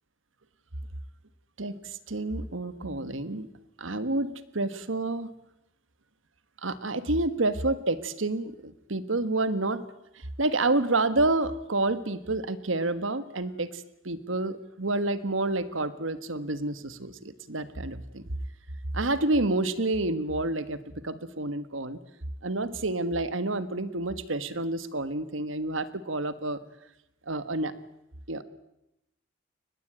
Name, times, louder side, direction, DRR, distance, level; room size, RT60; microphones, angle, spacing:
voice 1, 1.6-3.5 3.8-5.3 6.6-9.8 10.1-18.3 18.9-22.0 22.4-26.6 27.3-27.7 28.3-28.4, right 2 dB, 90° right, 13 dB, 1.6 m, -29 dB
23.5 x 20.5 x 8.9 m, 0.87 s
head